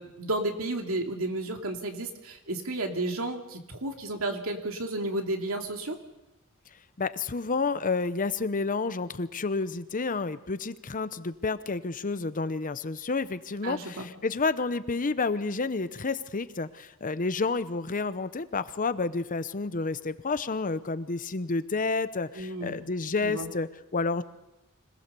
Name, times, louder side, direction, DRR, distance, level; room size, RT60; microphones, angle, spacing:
voice 1, 0.0-6.0 13.6-14.1 22.3-22.8 23.2-23.5, right 2 dB, 70° right, 3 dB, 2.9 m, -32 dB
voice 2, 7.0-24.2, left 4 dB, 40° left, 13 dB, 0.8 m, -30 dB
26.0 x 18.5 x 6.9 m, 0.93 s
head